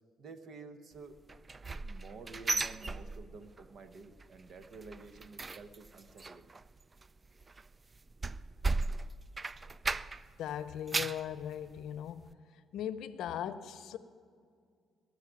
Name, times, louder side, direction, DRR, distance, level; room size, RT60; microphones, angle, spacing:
voice 1, 0.2-1.2 1.8-6.5, right 4 dB, 65° right, 1.1 m, -50 dB
sound 1, 1.3-3.6 3.9-4.3 4.6-10.4 10.7-11.3 11.8-11.9 12.3-12.4, right 3 dB, 30° right, 0.4 m, -36 dB
voice 2, 10.4-12.3 12.7-14.0, left 10 dB, 80° left, 0.7 m, -39 dB
19.5 x 6.6 x 9.9 m
cardioid pair, 90°, 0 cm